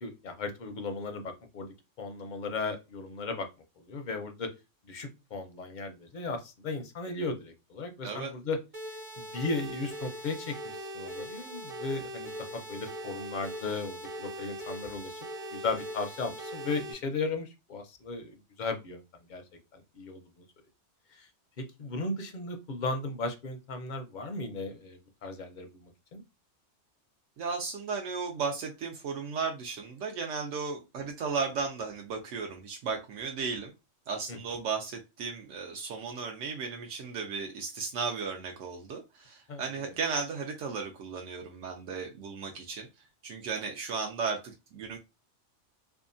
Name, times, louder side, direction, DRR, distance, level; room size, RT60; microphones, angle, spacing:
voice 1, 0.0-3.5 3.9-4.5 4.9-8.6 9.2-15.2 15.5-19.0 19.3-19.4 19.7-20.2 21.1-21.3 21.8-26.2 34.3-34.4 39.5-39.6, left 3 dB, 55° left, 6 dB, 0.5 m, -36 dB
sound 1, 8.7-16.9, equal, 40° right, 0.6 m, -41 dB
voice 2, 27.4-33.7 34.1-42.9 43.2-45.0, right 5 dB, 85° right, 2 dB, 0.9 m, -35 dB
2.7 x 2.2 x 2.5 m, 0.25 s
omnidirectional pair, 1.2 m